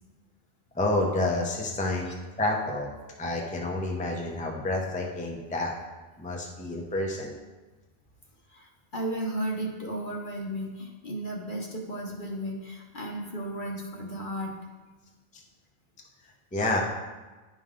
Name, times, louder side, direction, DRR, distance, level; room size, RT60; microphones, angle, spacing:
voice 1, 0.7-2.9 3.2-5.7 6.2-7.4 16.5-16.8, left 2 dB, 5° left, -1 dB, 0.7 m, -29 dB
voice 2, 8.5-14.5, right 1 dB, 45° left, 0 dB, 1.0 m, -34 dB
9.8 x 5.4 x 3.7 m, 1.2 s
omnidirectional pair, 1.3 m